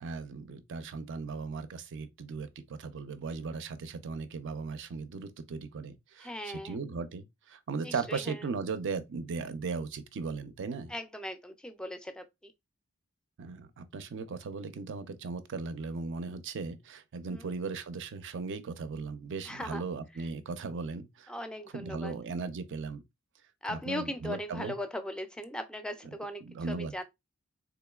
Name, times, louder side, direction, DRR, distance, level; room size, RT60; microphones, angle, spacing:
voice 1, 0.0-10.9 13.4-21.3 21.7-23.0 23.7-24.8 26.0-26.9, right 4 dB, 55° right, 0.4 m, -37 dB
voice 2, 6.2-6.8 7.8-8.2 10.9-12.5 17.3-17.4 19.5-19.8 21.3-22.1 23.6-26.4 26.7-27.0, left 1 dB, 5° left, 0.3 m, -38 dB
3.7 x 2.9 x 2.3 m
head